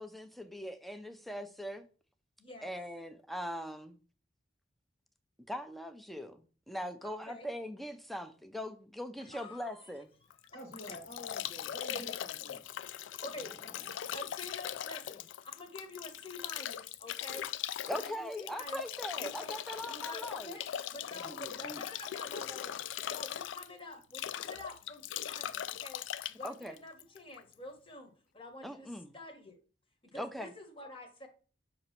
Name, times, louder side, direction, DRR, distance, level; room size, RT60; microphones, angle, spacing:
voice 1, 0.0-1.9 2.6-4.0 5.5-6.4 6.7-10.1 17.9-20.6 26.4-26.7 28.6-29.1 30.1-30.5, equal, ahead, 0.5 m, -41 dB
voice 2, 2.4-2.7 7.0-7.5 9.2-10.0 11.9-12.2 13.1-13.5 14.1-15.2 15.5-17.5 17.9-18.8 19.2-19.6 19.8-22.8 23.1-26.0 26.3-28.9 29.1-29.5 30.1-31.3, left 1 dB, 30° left, 1.2 m, -48 dB
Bathtub (filling or washing) / Drip / Trickle dribble, 10.3-27.5, left 10 dB, 70° left, 0.3 m, -40 dB
voice 3, 10.5-12.6 13.4-14.1 21.0-21.8, equal, 55° left, 1.5 m, -49 dB
6.4 x 3.0 x 5.7 m
head